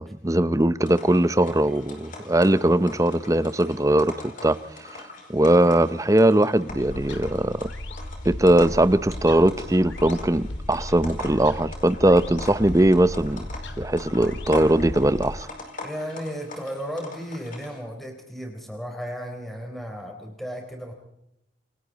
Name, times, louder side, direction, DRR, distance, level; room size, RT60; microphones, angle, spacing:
voice 1, 0.0-4.1 4.4-4.6 4.9-5.0 5.3-7.7 8.2-13.5 13.8-15.5, right 1 dB, 15° right, 0.7 m, -20 dB
sound 1, 0.8-17.8, left 2 dB, 45° left, 5.0 m, -42 dB
sound 2, 6.7-15.4, left 1 dB, 75° left, 1.9 m, -36 dB
voice 2, 15.8-20.9, equal, ahead, 3.9 m, -34 dB
28.5 x 22.0 x 4.1 m
head